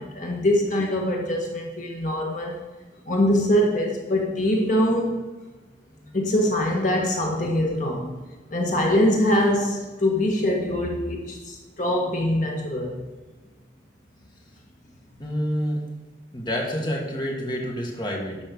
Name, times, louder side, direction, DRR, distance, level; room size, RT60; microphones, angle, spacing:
voice 1, 0.0-2.6 3.1-5.2 6.1-8.2 8.5-13.0, left 1 dB, 45° left, 0 dB, 1.6 m, -23 dB
voice 2, 15.2-15.8 16.3-18.4, equal, 25° left, -1 dB, 1.7 m, -28 dB
12.0 x 5.5 x 6.7 m, 1.2 s
head